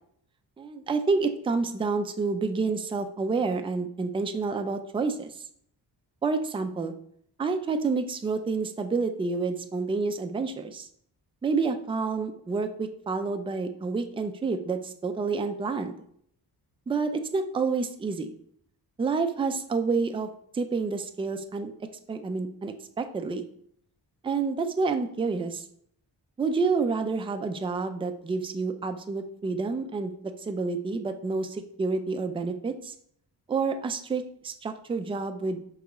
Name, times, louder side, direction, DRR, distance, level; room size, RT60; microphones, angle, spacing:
voice 1, 0.6-5.3 6.2-6.9 7.4-10.9 11.4-16.0 16.9-18.3 19.0-20.3 20.5-21.7 22.1-23.5 24.2-25.6 26.4-30.1 30.4-32.9 33.5-35.6, right 4 dB, 15° right, 7 dB, 0.3 m, -29 dB
4.8 x 3.5 x 3.0 m, 0.66 s
cardioid pair, 80°, 41 cm